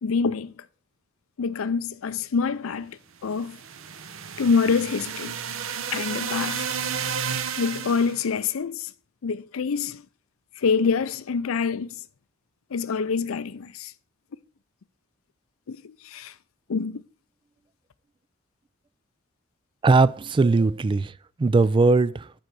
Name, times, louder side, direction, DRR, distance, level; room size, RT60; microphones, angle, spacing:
voice 1, 0.0-0.6 1.4-3.6 4.4-5.4 5.9-6.8 7.6-8.9 9.2-10.0 10.6-11.9 12.7-13.9 15.7-16.3 16.7-17.0, left 5 dB, 80° left, 0.5 m, -26 dB
sound 1, 3.3-8.2, right 7 dB, 75° right, 0.8 m, -32 dB
voice 2, 19.8-22.4, right 3 dB, 25° right, 0.3 m, -20 dB
9.3 x 3.9 x 6.8 m
head